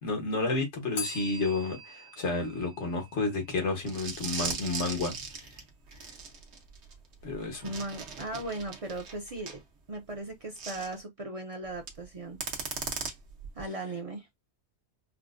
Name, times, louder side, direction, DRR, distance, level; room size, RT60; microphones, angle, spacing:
voice 1, 0.0-5.2 6.0-6.1 7.2-7.7, left 3 dB, 90° left, 1.4 m, -31 dB
Bell, 0.9-3.8, left 3 dB, 70° left, 1.4 m, -42 dB
sound 1, 3.9-9.6 10.6-10.9 11.7-12.0 12.4-13.6, right 5 dB, 75° right, 1.1 m, -38 dB
voice 2, 7.6-9.6 9.9-12.4 13.6-14.3, right 2 dB, 45° right, 0.5 m, -37 dB
4.4 x 2.1 x 2.4 m
omnidirectional pair, 1.1 m